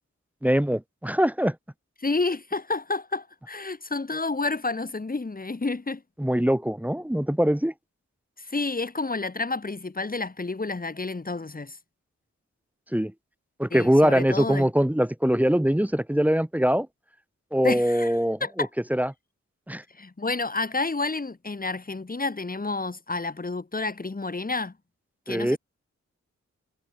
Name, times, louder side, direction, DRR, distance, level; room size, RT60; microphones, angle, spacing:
voice 1, 0.4-1.6 6.2-7.7 12.9-13.1 13.6-16.9 17.5-19.1 19.7-19.8 25.3-25.6, equal, 5° right, 0.8 m, -23 dB
voice 2, 2.0-6.0 8.4-11.8 13.7-14.7 17.6-18.1 18.4-18.7 19.9-24.7 25.3-25.6, left 3 dB, 30° left, 2.2 m, -30 dB
wide cardioid pair, 85°, 29 cm